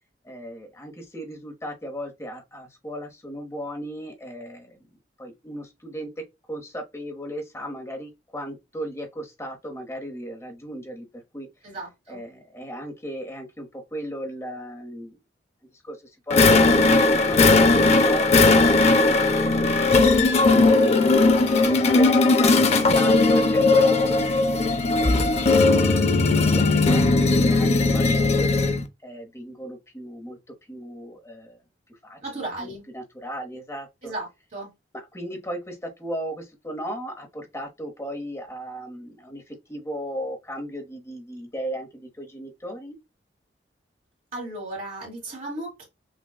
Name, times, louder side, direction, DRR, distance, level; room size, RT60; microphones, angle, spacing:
voice 1, 0.2-6.1 6.5-11.1 11.3-11.5 12.1-15.2 15.7-21.1 21.6-25.5 26.2-28.5 29.0-30.4 30.7-31.6 31.9-32.2 32.6-34.1 34.9-43.0, equal, 15° left, 0.9 m, -36 dB
voice 2, 11.6-12.2 32.2-32.9 34.0-34.7 44.3-45.8, right 2 dB, 45° right, 1.3 m, -35 dB
sound 1, 16.3-28.8, left 3 dB, 35° left, 0.4 m, -18 dB
6.0 x 2.2 x 2.2 m
head